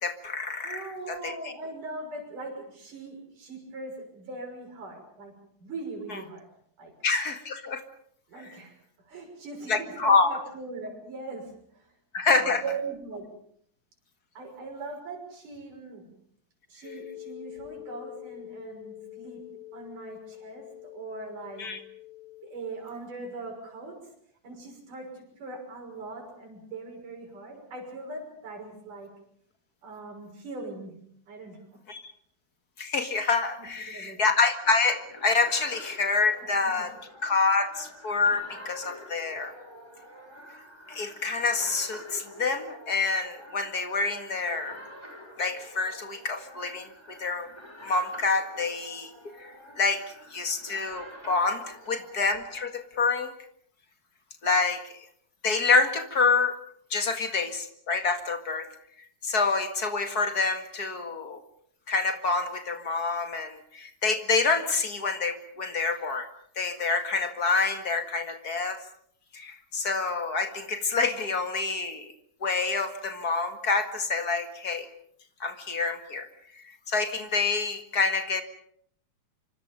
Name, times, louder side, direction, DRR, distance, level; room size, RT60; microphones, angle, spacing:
voice 1, 0.0-1.3 7.0-7.8 9.7-10.3 12.1-12.6 21.6-21.8 31.9-32.0 32.8-36.9 37.2-39.5 40.9-44.8 45.4-47.5 47.8-49.1 49.4-49.5 49.8-50.0 50.3-53.3 54.4-54.8 55.4-56.6 56.9-58.7 59.2-61.4 61.9-66.3 66.6-68.8 69.3-72.1 72.4-74.9 75.4-76.3 76.9-78.4, left 4 dB, 35° left, 7 dB, 1.9 m, -27 dB
voice 2, 0.6-5.3 5.6-6.5 6.8-6.9 8.3-8.7 9.1-11.9 12.3-13.3 14.4-16.1 16.7-21.7 22.4-24.0 24.4-29.1 29.8-30.9 31.3-31.8 33.6-34.2 36.8-36.9, right 3 dB, 85° right, 2 dB, 7.6 m, -40 dB
sound 1, 16.8-22.6, left 16 dB, 55° left, 5.7 m, -45 dB
sound 2, 34.6-52.7, equal, 10° left, 6.6 m, -47 dB
26.0 x 25.5 x 5.3 m, 0.65 s
omnidirectional pair, 3.6 m